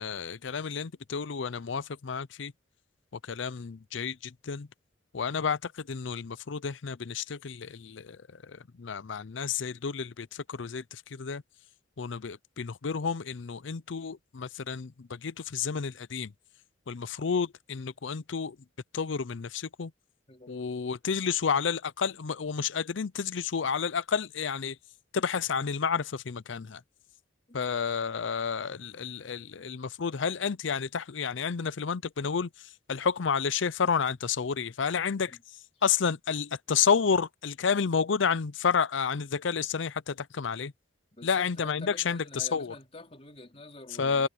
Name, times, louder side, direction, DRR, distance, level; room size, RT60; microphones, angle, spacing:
voice 1, 0.0-2.5 3.3-4.2 4.5-4.7 5.1-8.2 8.8-10.8 11.1-11.4 12.0-14.9 15.2-16.3 16.9-18.6 18.9-19.9 20.5-24.7 25.1-26.8 27.5-32.5 32.9-35.3 35.8-40.7 41.2-42.7 44.0-44.3, left 6 dB, 70° left, 0.6 m, -30 dB
voice 2, 41.2-44.3, left 2 dB, 30° left, 3.7 m, -47 dB
head